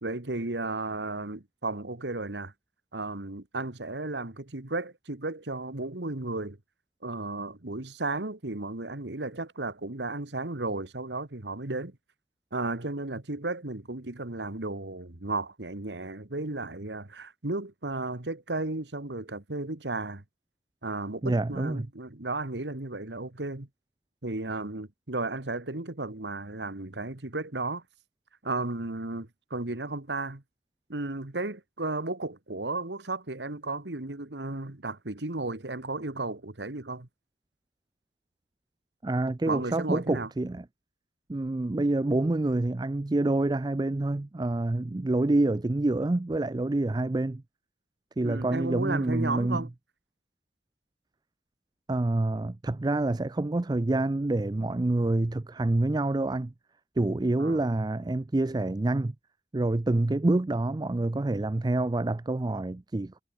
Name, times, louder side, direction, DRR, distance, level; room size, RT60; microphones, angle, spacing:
voice 1, 0.0-2.5 2.9-6.6 7.0-12.0 12.5-20.2 20.8-23.7 24.2-27.8 28.4-30.4 30.9-37.1 39.5-40.3 48.2-49.7 57.4-57.7, right 2 dB, 80° right, 1.8 m, -34 dB
voice 2, 21.2-21.9 39.0-40.6 41.3-47.4 48.2-49.7 51.9-56.5 57.0-59.1 59.5-63.2, right 2 dB, 25° right, 0.4 m, -27 dB
head